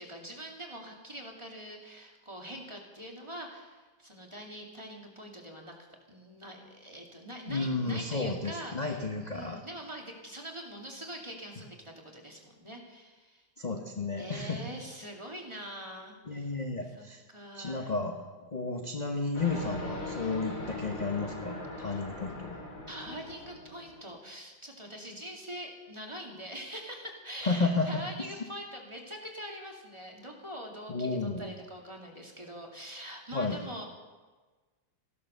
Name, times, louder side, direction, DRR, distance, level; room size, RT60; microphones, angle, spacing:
voice 1, 0.0-5.8 6.1-9.0 9.3-13.5 14.2-16.5 17.0-17.9 21.8-22.0 22.9-33.9, equal, 15° right, 0 dB, 2.3 m, -44 dB
voice 2, 7.5-9.6 13.6-14.6 16.3-17.2 17.5-18.2 18.5-22.6 27.4-28.0 30.9-31.5 33.3-33.6, left 3 dB, 30° left, 3 dB, 1.0 m, -32 dB
sound 1, 19.3-24.1, left 2 dB, 70° left, 4.1 m, -40 dB
15.5 x 12.0 x 6.7 m, 1.3 s
omnidirectional pair, 2.1 m